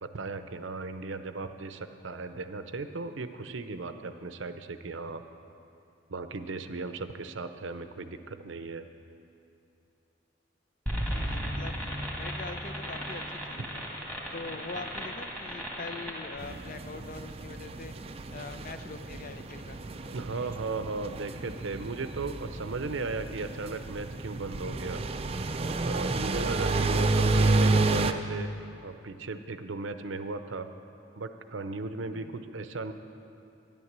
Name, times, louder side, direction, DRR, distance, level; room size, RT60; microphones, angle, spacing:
voice 1, 0.0-5.2 6.1-8.9 20.1-25.0 25.8-28.5 28.8-30.7 31.2-32.9, right 3 dB, 70° right, 9 dB, 0.7 m, -36 dB
sound 1, 10.9-16.4, equal, 5° left, 1.8 m, -36 dB
voice 2, 11.0-11.8 12.2-13.9 14.3-18.0 18.3-19.8 20.3-20.7 32.1-32.5, left 3 dB, 40° left, 9 dB, 0.7 m, -43 dB
sound 2, 11.1-14.2, equal, 75° left, 2.4 m, -42 dB
sound 3, 16.4-28.1, right 3 dB, 30° right, 0.5 m, -30 dB
12.5 x 10.5 x 7.4 m, 2.7 s
head